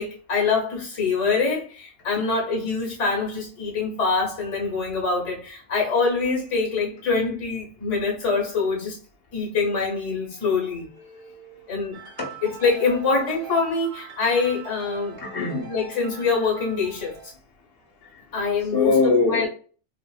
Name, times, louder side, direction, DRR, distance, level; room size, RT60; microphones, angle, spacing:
voice 1, 0.0-9.0 9.3-10.9 11.7-12.0 12.6-15.2 15.7-17.2 18.3-18.9 19.3-19.5, left 4 dB, 80° left, 1.3 m, -24 dB
voice 2, 11.0-11.7 12.2-12.4 15.2-15.7 18.0-18.2 18.7-19.5, left 4 dB, 55° left, 1.3 m, -24 dB
sound 1, 11.9-17.3, right 5 dB, 75° right, 1.2 m, -42 dB
3.0 x 2.7 x 2.3 m
omnidirectional pair, 1.2 m